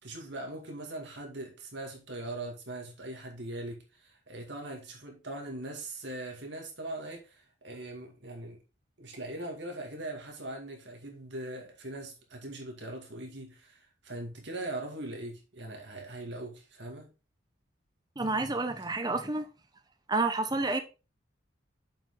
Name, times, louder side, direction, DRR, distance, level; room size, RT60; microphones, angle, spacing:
voice 1, 0.0-8.6 9.0-17.1, right 1 dB, 65° right, 2.2 m, -41 dB
voice 2, 18.2-19.5 20.1-20.8, right 3 dB, 20° right, 0.7 m, -29 dB
7.3 x 5.5 x 3.8 m
head